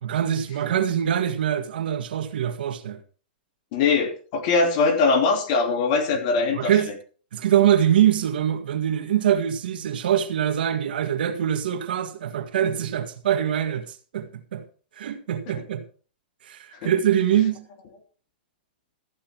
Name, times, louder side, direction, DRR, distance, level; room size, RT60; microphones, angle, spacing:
voice 1, 0.0-3.0 6.5-6.9 7.3-14.6 15.0-15.8 16.4-17.7, right 10 dB, 70° right, 1.8 m, -23 dB
voice 2, 3.7-6.7 16.8-16.9, left 4 dB, 40° left, 2.9 m, -21 dB
14.5 x 8.9 x 4.6 m
hypercardioid pair, 155°, 5 cm